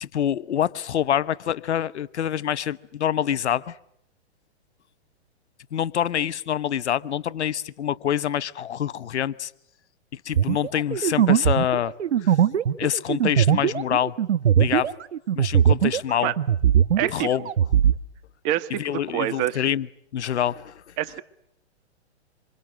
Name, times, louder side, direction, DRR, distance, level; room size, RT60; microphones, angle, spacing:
voice 1, 0.0-3.7 5.7-9.5 10.3-11.9 12.2-12.3 12.8-14.1 14.6-14.9 15.3-16.3 17.1-17.4 18.8-19.9 20.1-20.7, left 10 dB, 75° left, 1.0 m, -26 dB
sound 1, 10.3-16.1 16.4-18.0, right 9 dB, 75° right, 1.3 m, -20 dB
voice 2, 17.0-17.3 18.4-19.6 21.0-21.2, right 13 dB, 35° right, 1.5 m, -26 dB
27.0 x 25.5 x 7.7 m
hypercardioid pair, 130°, 34 cm